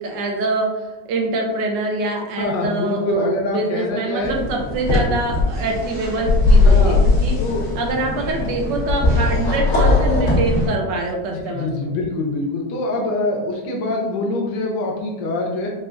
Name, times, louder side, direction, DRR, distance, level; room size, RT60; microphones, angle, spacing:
voice 1, 0.0-7.4 7.7-11.9, right 2 dB, 80° right, 1 dB, 1.3 m, -24 dB
voice 2, 2.4-4.4 6.6-7.0 7.4-7.7 11.5-15.7, left 2 dB, 85° left, 0 dB, 1.3 m, -24 dB
sound 1, 4.2-10.7, left 3 dB, 50° left, 1.6 m, -18 dB
4.9 x 2.4 x 2.4 m, 1.1 s
omnidirectional pair, 1.9 m